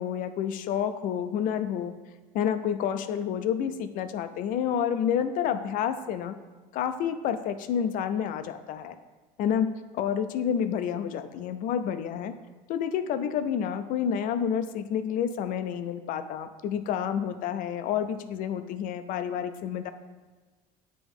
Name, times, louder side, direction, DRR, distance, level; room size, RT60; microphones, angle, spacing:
voice 1, 0.0-1.9 2.3-6.4 6.7-9.0 9.4-12.3 12.7-19.9, left 8 dB, 55° left, 10 dB, 0.4 m, -29 dB
8.8 x 3.0 x 3.6 m, 1.3 s
cardioid pair, 140°, 17 cm